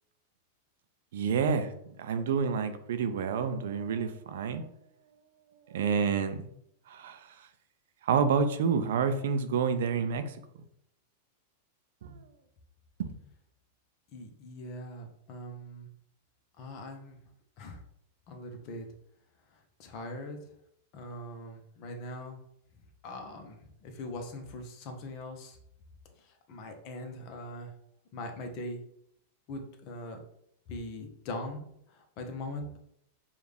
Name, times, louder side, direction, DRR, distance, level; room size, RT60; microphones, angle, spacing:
voice 1, 1.1-1.7 2.0-4.7 5.7-6.4 6.9-7.4 8.0-10.4 12.0-12.2 13.0-13.2, right 6 dB, 70° right, 9 dB, 0.4 m, -29 dB
voice 2, 14.1-15.9 16.6-17.2 17.6-17.8 18.3-18.8 19.8-20.4 20.9-22.4 23.0-25.6 26.5-27.7 28.1-28.8 29.5-30.2 30.7-31.6 32.2-32.8, left 1 dB, 50° left, 4 dB, 0.9 m, -41 dB
4.9 x 2.4 x 3.4 m, 0.73 s
hypercardioid pair, 110°, 0 cm